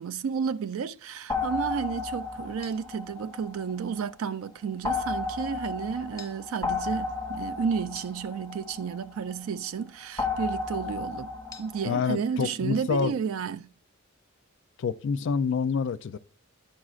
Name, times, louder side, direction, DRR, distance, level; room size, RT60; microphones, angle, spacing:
voice 1, 0.0-11.3 11.6-13.7, right 6 dB, 85° right, 0.4 m, -32 dB
sound 1, 1.3-4.1 4.8-9.4 10.2-12.0, left 4 dB, 15° left, 0.6 m, -33 dB
voice 2, 11.8-13.2 14.8-16.2, left 6 dB, 60° left, 0.4 m, -27 dB
10.5 x 6.2 x 2.4 m
head